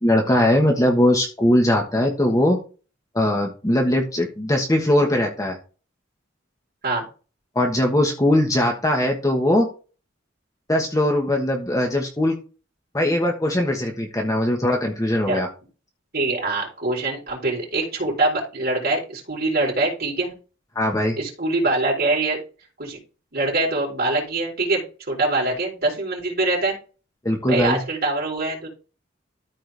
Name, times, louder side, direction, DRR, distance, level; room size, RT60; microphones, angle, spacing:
voice 1, 0.0-2.6 3.1-5.6 7.5-9.7 10.7-12.3 12.9-15.5 20.7-21.2 27.2-27.8, left 1 dB, 15° left, 1 dB, 1.4 m, -20 dB
voice 2, 16.1-20.3 21.2-22.4 22.8-23.0 23.3-26.8 27.5-28.7, right 2 dB, 50° right, -3 dB, 4.1 m, -24 dB
13.5 x 4.5 x 3.4 m, 0.34 s
head